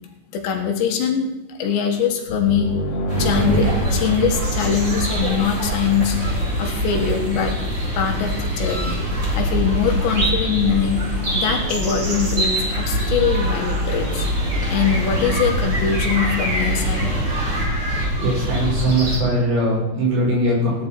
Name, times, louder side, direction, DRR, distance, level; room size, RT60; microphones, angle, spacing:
voice 1, 0.3-2.8 3.2-6.2 6.6-7.6 8.0-9.0 9.4-11.1 11.3-14.3 14.7-17.1, left 7 dB, 75° left, 3 dB, 3.8 m, -22 dB
sound 1, 2.3-5.9, right 1 dB, 55° left, 1.9 m, -26 dB
sound 2, 3.1-19.2, right 1 dB, 20° right, 2.4 m, -23 dB
voice 2, 18.2-20.9, right 1 dB, 75° right, -5 dB, 8.4 m, -20 dB
17.0 x 10.0 x 4.8 m, 0.96 s
omnidirectional pair, 5.2 m